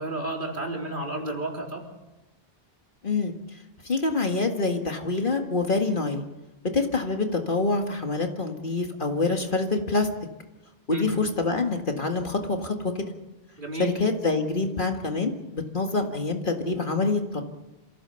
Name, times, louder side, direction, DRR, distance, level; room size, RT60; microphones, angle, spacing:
voice 1, 0.0-1.9 10.9-11.1 13.6-13.9, right 2 dB, 55° right, 0 dB, 3.8 m, -31 dB
voice 2, 3.0-3.3 3.8-6.3 6.6-10.1 10.9-13.1 13.8-17.4, left 3 dB, 55° left, 4 dB, 2.0 m, -26 dB
27.5 x 15.5 x 7.0 m, 1.0 s
omnidirectional pair, 1.0 m